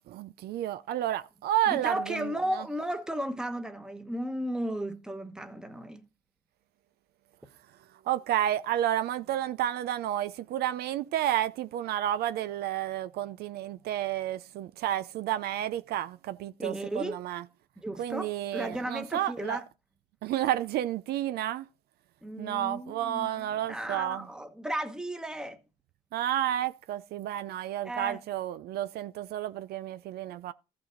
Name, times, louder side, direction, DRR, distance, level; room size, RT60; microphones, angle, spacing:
voice 1, 0.0-2.6 8.0-17.4 18.0-19.6 20.2-21.7 22.4-24.3 26.1-30.5, right 12 dB, 70° right, 0.5 m, -31 dB
voice 2, 1.7-6.1 16.6-17.2 17.8-19.6 22.2-25.6 27.8-28.2, right 1 dB, 5° right, 1.1 m, -35 dB
14.5 x 5.3 x 3.9 m
cardioid pair, 110°, 17 cm